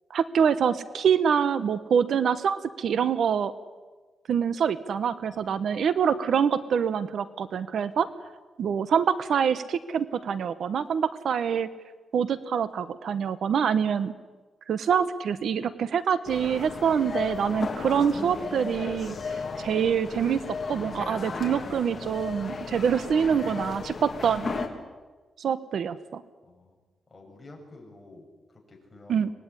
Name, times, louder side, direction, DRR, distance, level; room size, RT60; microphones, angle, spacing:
voice 1, 0.1-3.5 4.3-8.1 8.6-11.7 12.1-14.1 14.7-20.4 20.7-24.6 25.4-26.2 29.1-29.3, right 7 dB, 70° right, 14 dB, 1.1 m, -25 dB
voice 2, 5.2-5.8 7.9-8.1 26.4-26.8 27.1-29.3, left 2 dB, 15° left, 0 dB, 7.1 m, -52 dB
sound 1, 16.3-24.7, left 4 dB, 35° left, 3.2 m, -35 dB
24.5 x 20.0 x 9.9 m, 1.3 s
wide cardioid pair, 125°, 0 cm